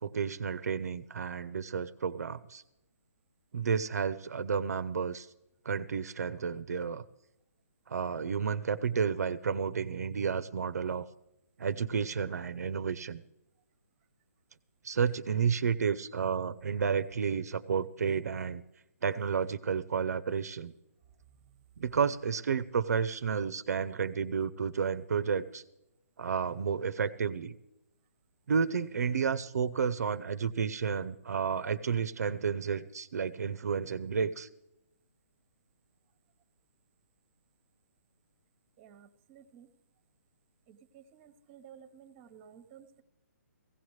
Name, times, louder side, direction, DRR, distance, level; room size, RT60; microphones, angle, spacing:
voice 1, 0.0-2.6 3.5-5.3 5.6-7.0 7.9-11.1 11.6-13.2 14.8-18.6 19.0-20.7 21.8-25.6 26.2-27.6 28.5-34.5, right 6 dB, 70° right, 13 dB, 0.7 m, -31 dB
voice 2, 38.8-39.7 40.7-43.0, right 8 dB, 25° right, 12 dB, 1.1 m, -55 dB
17.0 x 16.5 x 3.2 m, 0.87 s
hypercardioid pair, 145°, 9 cm